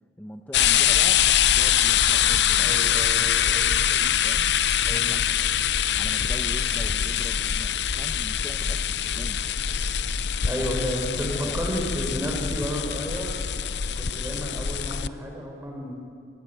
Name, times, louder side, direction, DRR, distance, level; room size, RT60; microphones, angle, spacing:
voice 1, 0.2-5.4 5.9-9.4 11.3-11.6, equal, 10° left, 4 dB, 1.0 m, -42 dB
sound 1, 0.5-15.1, left 9 dB, 70° left, 0.6 m, -24 dB
voice 2, 2.6-3.7 4.8-5.2 10.4-13.4 13.9-15.9, equal, 15° right, 0 dB, 5.1 m, -31 dB
27.0 x 20.5 x 8.2 m, 2.4 s
head